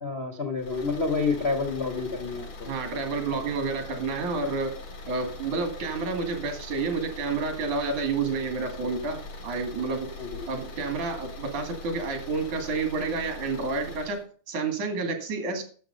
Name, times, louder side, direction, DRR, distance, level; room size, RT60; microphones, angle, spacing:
voice 1, 0.0-2.7 10.2-10.3, left 4 dB, 65° left, 5 dB, 0.6 m, -28 dB
sound 1, 0.6-14.2, left 2 dB, 90° left, 4.1 m, -42 dB
voice 2, 2.7-4.8 5.1-10.1 10.5-15.7, right 4 dB, 75° right, 6 dB, 3.7 m, -30 dB
11.5 x 7.2 x 5.2 m, 0.43 s
omnidirectional pair, 3.4 m